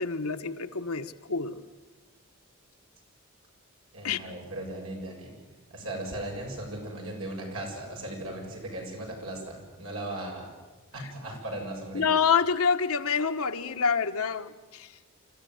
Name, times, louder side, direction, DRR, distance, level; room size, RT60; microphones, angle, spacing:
voice 1, 0.0-1.7 4.0-4.2 11.9-14.9, left 6 dB, 90° left, 8 dB, 1.2 m, -27 dB
voice 2, 3.9-5.4 5.7-10.6 10.9-12.1, right 1 dB, 75° right, 0 dB, 7.5 m, -37 dB
27.0 x 14.5 x 9.4 m, 1.3 s
head